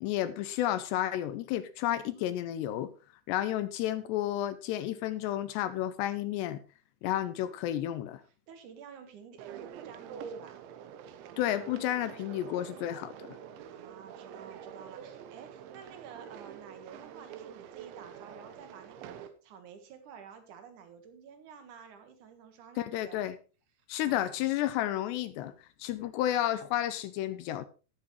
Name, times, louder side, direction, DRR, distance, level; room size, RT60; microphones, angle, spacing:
voice 1, 0.0-2.9 3.3-6.6 7.0-8.2 11.4-13.3 22.8-23.4 23.9-25.5 25.8-27.7, left 12 dB, 80° left, 13 dB, 2.6 m, -31 dB
voice 2, 1.9-2.4 8.5-10.7 13.7-23.2 23.8-24.5, right 7 dB, 55° right, 7 dB, 2.4 m, -51 dB
sound 1, 9.4-19.3, right 8 dB, 85° right, 3.3 m, -46 dB
19.0 x 7.6 x 3.2 m, 0.34 s
omnidirectional pair, 5.3 m